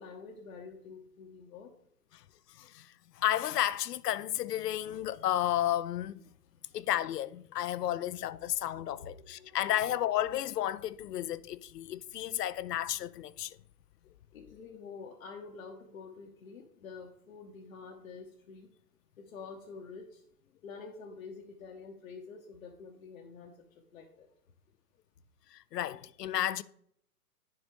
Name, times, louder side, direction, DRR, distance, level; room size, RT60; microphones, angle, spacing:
voice 1, 0.0-1.7 8.0-8.1 8.9-9.7 14.3-18.7 19.2-20.2 20.6-23.6 23.9-24.3, left 5 dB, 60° left, 1.0 m, -48 dB
voice 2, 2.5-6.2 6.7-13.6 25.5-26.6, left 12 dB, 75° left, 0.5 m, -32 dB
10.5 x 3.9 x 3.1 m
hypercardioid pair, 135°, 48 cm